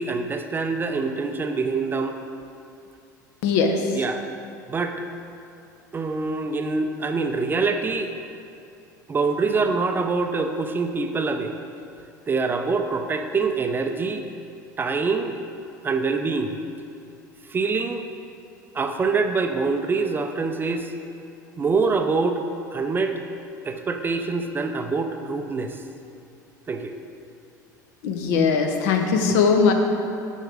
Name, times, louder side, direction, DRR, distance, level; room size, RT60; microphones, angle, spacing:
voice 1, 0.0-2.2 3.9-4.3 4.7-5.0 5.9-8.1 9.1-11.6 12.3-14.2 14.8-15.3 15.8-16.6 17.5-18.1 18.7-20.9 21.6-22.4 22.7-23.2 23.6-25.8 26.7-26.9 29.3-29.4, right 4 dB, 20° right, 6 dB, 0.5 m, -25 dB
voice 2, 3.4-4.0 28.0-29.7, left 5 dB, 55° left, 4 dB, 0.8 m, -20 dB
7.6 x 6.3 x 4.9 m, 2.6 s
figure-of-eight pair, 70°, 10 cm